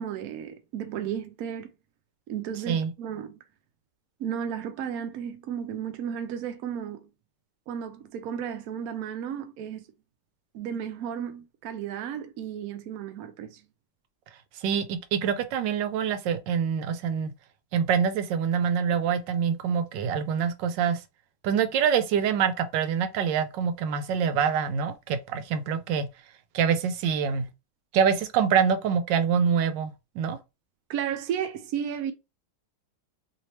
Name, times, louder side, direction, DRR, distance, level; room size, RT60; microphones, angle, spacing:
voice 1, 0.0-1.7 2.3-3.4 4.2-7.1 7.7-9.8 10.5-13.6 30.9-32.1, right 8 dB, 70° right, 0.9 m, -33 dB
voice 2, 14.6-17.3 17.7-21.0 21.4-26.1 26.5-27.5 27.9-30.4, right 7 dB, 85° right, 1.3 m, -25 dB
3.1 x 3.1 x 2.8 m
omnidirectional pair, 1.9 m